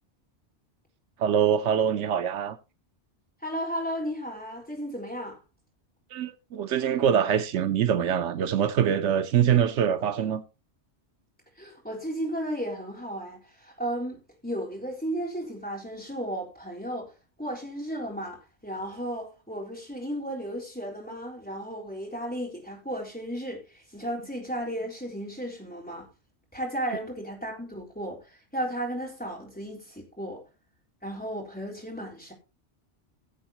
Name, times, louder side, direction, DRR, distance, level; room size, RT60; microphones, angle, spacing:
voice 1, 1.2-2.6 6.1-10.4, right 8 dB, 85° right, 1.0 m, -24 dB
voice 2, 3.4-5.4 11.6-17.1 17.4-26.1 26.5-30.4 31.0-32.3, equal, 10° left, 3.9 m, -34 dB
17.0 x 7.9 x 2.9 m
omnidirectional pair, 1.2 m